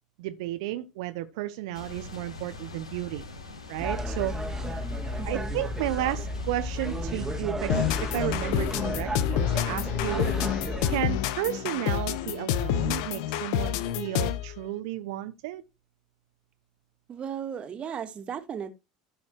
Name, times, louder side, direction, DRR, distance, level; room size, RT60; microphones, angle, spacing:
voice 1, 0.2-3.2 3.7-4.4 5.3-10.3 10.9-15.6, right 15 dB, 65° right, 0.9 m, -33 dB
sound 1, 1.7-7.4, left 2 dB, 85° left, 3.9 m, -43 dB
sound 2, 3.8-10.9, equal, 15° right, 2.3 m, -32 dB
voice 2, 5.2-5.5 17.1-18.7, right 8 dB, 35° right, 2.0 m, -35 dB
sound 3, 7.7-14.6, left 10 dB, 65° left, 1.2 m, -28 dB
15.0 x 6.9 x 3.1 m
hypercardioid pair, 75°, 3 cm